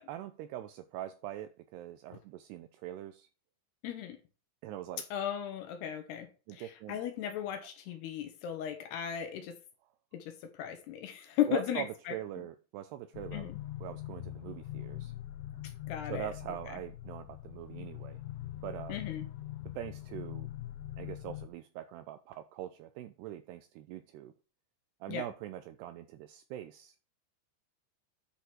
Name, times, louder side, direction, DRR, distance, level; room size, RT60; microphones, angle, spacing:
voice 1, 0.1-3.3 4.6-5.0 6.5-7.0 11.5-13.5 13.8-15.1 16.1-18.2 18.6-19.0 19.8-20.5 21.0-24.3 25.0-27.1, right 12 dB, 85° right, 2.4 m, -42 dB
voice 2, 3.8-4.2 5.1-9.6 10.1-12.1 13.3-13.6 15.9-16.3 18.9-19.2 25.1-25.2, left 10 dB, 70° left, 3.0 m, -36 dB
sound 1, 13.1-21.5, left 14 dB, 85° left, 3.1 m, -42 dB
10.5 x 5.0 x 4.5 m
omnidirectional pair, 5.3 m